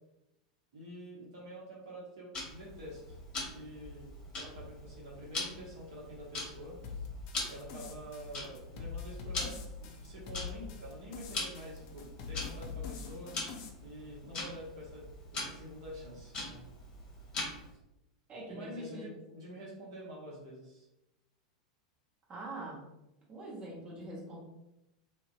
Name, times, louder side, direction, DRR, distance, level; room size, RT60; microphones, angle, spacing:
voice 1, 0.7-3.2 3.5-4.1 4.3-6.8 7.5-13.4 13.8-15.1 15.3-16.6 18.5-20.9, equal, 60° right, -5 dB, 0.8 m, -47 dB
Tick-tock, 2.3-17.8, left 2 dB, 30° left, 0.9 m, -43 dB
sound 1, 6.8-13.7, left 6 dB, 50° left, 0.4 m, -44 dB
voice 2, 18.3-19.1 22.3-22.8 23.3-24.4, right 2 dB, 30° right, -4 dB, 0.9 m, -44 dB
2.5 x 2.1 x 2.4 m, 0.89 s
figure-of-eight pair, 90°, 3 cm